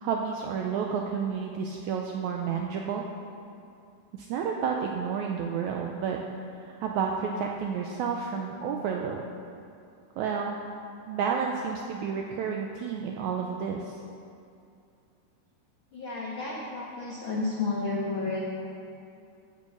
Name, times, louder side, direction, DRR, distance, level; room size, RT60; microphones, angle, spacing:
voice 1, 0.0-3.1 4.1-6.2 6.6-9.2 10.2-10.6 11.1-14.0, right 6 dB, 90° right, 1 dB, 1.7 m, -30 dB
voice 2, 15.9-18.4, left 3 dB, 75° left, -4 dB, 1.1 m, -31 dB
14.5 x 5.4 x 6.3 m, 2.5 s
omnidirectional pair, 4.0 m